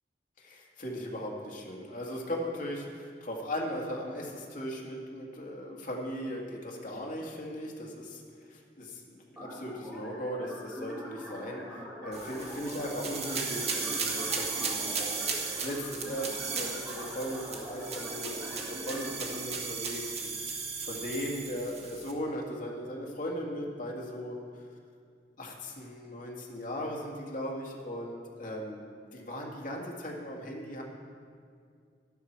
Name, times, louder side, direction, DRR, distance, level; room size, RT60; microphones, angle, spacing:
voice 1, 0.4-15.2 15.6-24.6 25.4-28.8 29.1-30.8, equal, 45° left, -1 dB, 2.0 m, -38 dB
sound 1, 9.4-19.3, equal, 10° right, 3.7 m, -43 dB
sound 2, 12.1-22.1, right 5 dB, 35° right, 1.4 m, -36 dB
12.0 x 11.5 x 4.6 m, 2.2 s
head